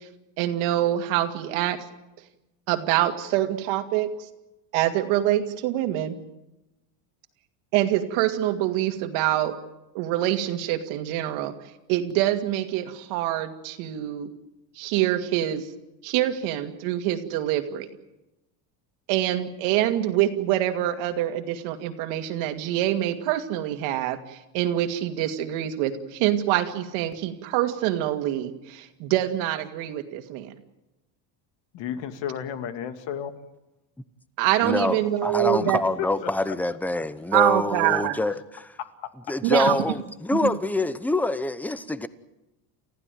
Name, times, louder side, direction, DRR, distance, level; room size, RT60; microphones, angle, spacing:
voice 1, 0.4-1.8 2.7-4.1 4.7-6.1 7.7-9.5 9.9-11.5 11.9-14.3 14.8-15.6 16.0-17.9 19.1-30.5 34.4-35.8 37.3-38.2 39.4-39.8 40.4-40.5, right 13 dB, 75° right, 2.5 m, -25 dB
voice 2, 31.7-33.3 35.6-35.7 36.2-36.3 38.8-38.9, left 9 dB, 60° left, 2.4 m, -32 dB
voice 3, 34.6-38.8 39.3-42.1, left 2 dB, 5° left, 0.8 m, -26 dB
29.5 x 15.0 x 9.3 m
cardioid pair, 135°, 49 cm